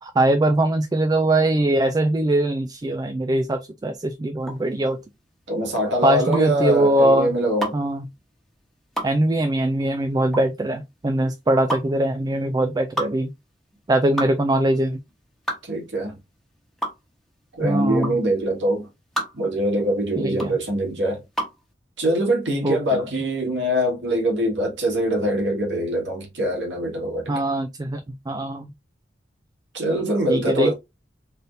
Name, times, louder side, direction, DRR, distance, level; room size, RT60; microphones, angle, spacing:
voice 1, 0.0-5.0 6.0-7.3 7.7-8.0 9.0-13.3 13.9-15.0 17.6-18.2 20.2-20.5 22.6-23.0 27.3-28.0 28.3-28.7 30.3-30.7, right 1 dB, 20° right, 0.3 m, -21 dB
sound 1, 4.4-21.6, right 1 dB, ahead, 1.2 m, -32 dB
voice 2, 5.5-7.8 15.6-16.2 17.6-18.9 19.3-21.2 22.0-27.3 29.7-30.7, equal, 85° right, 2.1 m, -23 dB
4.1 x 3.5 x 2.6 m
head